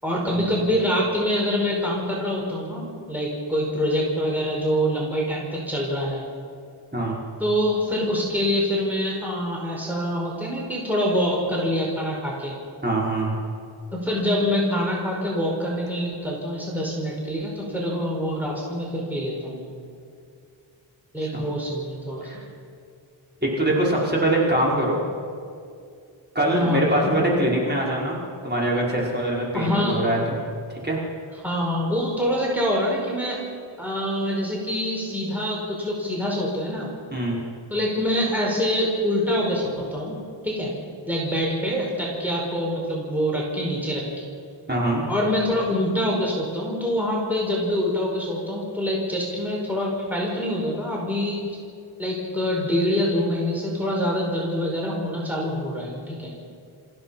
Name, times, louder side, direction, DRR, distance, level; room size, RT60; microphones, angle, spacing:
voice 1, 0.0-6.3 7.4-12.5 13.9-19.7 21.1-22.2 26.5-27.5 29.5-30.0 31.4-33.4 33.8-36.9 37.7-40.1 40.4-40.7 41.1-44.1 45.1-51.4 52.0-56.3, equal, 5° right, -3 dB, 5.0 m, -25 dB
voice 2, 12.8-13.4 21.2-21.4 22.2-22.4 23.4-25.0 26.4-30.4 30.8-31.0 37.1-37.4 44.7-45.0, right 1 dB, 20° right, -4 dB, 5.3 m, -23 dB
28.0 x 16.0 x 5.8 m, 2.3 s
wide cardioid pair, 85°, 49 cm